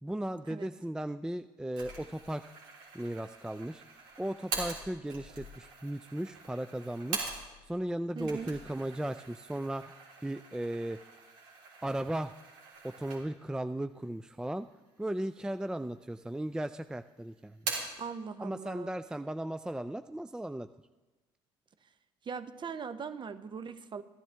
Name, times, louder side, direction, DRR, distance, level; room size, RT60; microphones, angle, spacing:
voice 1, 0.0-2.4 2.9-3.8 4.2-7.3 7.6-9.9 10.2-11.0 11.8-12.3 12.8-14.7 15.0-17.6 18.4-20.7, right 1 dB, 5° right, 11 dB, 0.4 m, -36 dB
sound 1, 1.7-7.7 8.1-13.5 14.0-14.1 14.9-15.6 15.9-16.6 16.9-18.0, right 4 dB, 80° right, 3.6 m, -43 dB
voice 2, 8.2-8.5 18.0-18.9 22.2-24.0, right 6 dB, 40° right, 12 dB, 0.9 m, -40 dB
14.0 x 12.0 x 3.4 m, 1.1 s
hypercardioid pair, 65°, 13 cm